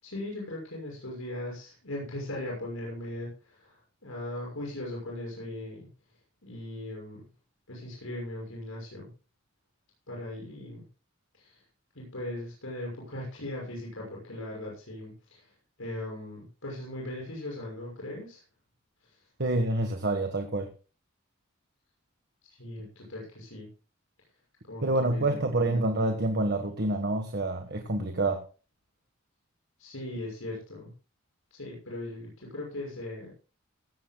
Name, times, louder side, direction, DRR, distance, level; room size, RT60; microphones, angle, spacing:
voice 1, 0.0-5.9 6.4-7.3 7.7-9.1 10.1-10.8 11.3-11.6 11.9-15.5 15.8-18.4 19.0-19.2 22.5-23.7 24.7-25.4 29.8-30.9 31.5-33.3, left 1 dB, 80° left, -2 dB, 6.5 m, -39 dB
voice 2, 19.4-20.7 24.8-28.4, right 2 dB, 55° right, 5 dB, 1.5 m, -27 dB
17.0 x 15.5 x 2.3 m, 0.34 s
head